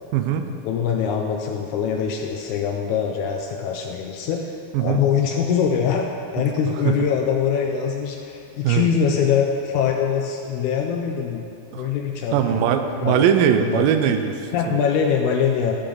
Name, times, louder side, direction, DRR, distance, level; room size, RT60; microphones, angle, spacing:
voice 1, 0.1-0.4 4.7-5.0 6.8-6.9 8.6-8.9 11.7-11.9 12.3-14.8, right 9 dB, 90° right, 7 dB, 2.3 m, -20 dB
voice 2, 0.6-11.4 11.8-13.3 13.6-13.9 14.5-15.8, left 7 dB, 80° left, 2 dB, 1.8 m, -23 dB
12.5 x 6.9 x 3.8 m, 2.7 s
omnidirectional pair, 3.9 m